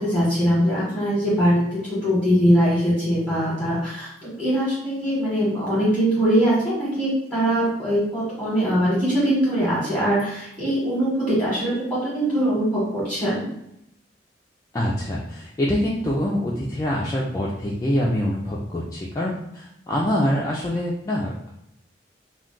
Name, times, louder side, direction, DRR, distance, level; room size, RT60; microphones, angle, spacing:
voice 1, 0.0-13.5, equal, 5° left, -10 dB, 1.0 m, -22 dB
voice 2, 14.7-21.5, left 1 dB, 20° left, -4 dB, 0.3 m, -25 dB
2.3 x 2.3 x 3.7 m, 0.80 s
head